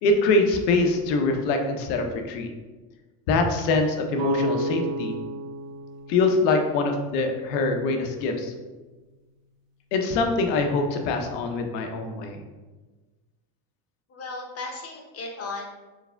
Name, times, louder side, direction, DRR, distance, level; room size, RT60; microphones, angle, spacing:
voice 1, 0.0-2.5 3.3-5.2 6.1-8.5 9.9-12.4, left 3 dB, 75° left, 4 dB, 0.8 m, -24 dB
sound 1, 4.2-8.0, equal, 65° right, 0.7 m, -32 dB
voice 2, 14.1-15.6, left 3 dB, 30° left, 0 dB, 0.7 m, -35 dB
4.8 x 3.3 x 2.2 m, 1.2 s
supercardioid pair, 115°, 49 cm